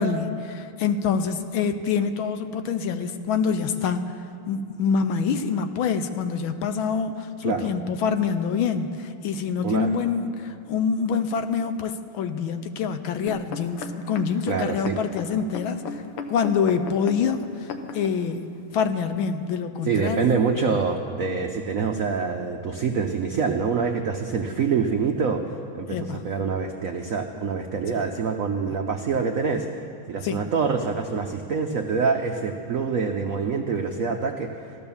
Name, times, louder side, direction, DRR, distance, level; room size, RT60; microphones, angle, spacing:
voice 1, 0.0-4.1 4.5-15.8 16.3-17.7 17.9-18.4 18.7-20.4 25.9-26.2 27.9-28.0 30.2-30.4, left 6 dB, 75° left, 9 dB, 1.4 m, -26 dB
sound 1, 13.3-18.2 18.8-18.9, left 5 dB, 90° left, 1.9 m, -36 dB
voice 2, 14.5-15.0 19.8-34.5, right 5 dB, 75° right, 4 dB, 0.7 m, -26 dB
16.5 x 12.5 x 7.1 m, 2.8 s
omnidirectional pair, 2.4 m